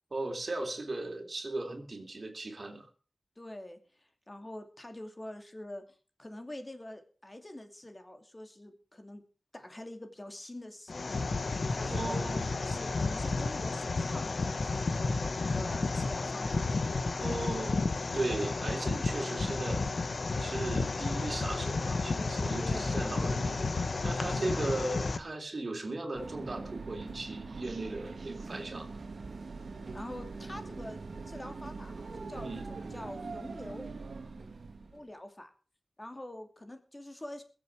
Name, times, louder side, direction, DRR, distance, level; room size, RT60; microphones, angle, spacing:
voice 1, 0.1-2.9 11.8-12.5 17.2-17.8 18.1-19.8 20.4-23.7 24.0-29.0 32.3-32.7, right 2 dB, 50° right, 4 dB, 3.2 m, -37 dB
voice 2, 3.4-9.2 9.5-11.2 11.5-12.2 12.6-14.5 15.0-16.7 22.6-23.1 24.3-24.8 29.9-33.9 34.9-35.5 36.0-37.4, left 1 dB, 25° left, 6 dB, 2.6 m, -45 dB
sound 1, 10.9-25.2, left 3 dB, 70° left, 1.2 m, -32 dB
sound 2, 26.1-35.1, right 4 dB, 80° right, 1.6 m, -42 dB
22.0 x 7.9 x 4.8 m, 0.38 s
wide cardioid pair, 80°, 0 cm